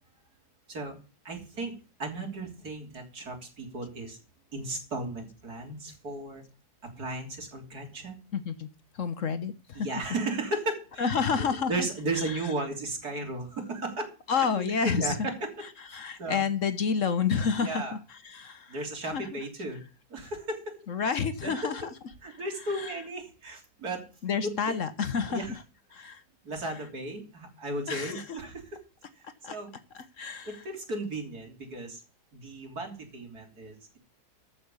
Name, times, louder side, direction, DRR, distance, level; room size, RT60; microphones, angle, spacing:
voice 1, 1.3-1.7 2.0-4.2 4.5-6.4 7.0-8.2 9.7-16.5 17.6-18.0 18.7-19.8 20.1-20.8 21.4-21.9 22.2-24.0 24.4-24.8 25.3-25.6 26.4-28.8 29.2-29.7 30.5-32.0 32.3-34.0, right 2 dB, 75° right, 2 dB, 3.8 m, -35 dB
voice 2, 8.3-8.7 8.9-10.2 11.0-12.6 14.3-15.3 15.6-19.5 20.9-23.1 24.2-25.6 25.9-26.2 26.6-26.9 27.9-28.4 29.4-29.6 29.9-30.7, left 6 dB, 55° left, 11 dB, 1.3 m, -31 dB
14.0 x 6.0 x 7.0 m, 0.34 s
omnidirectional pair, 1.7 m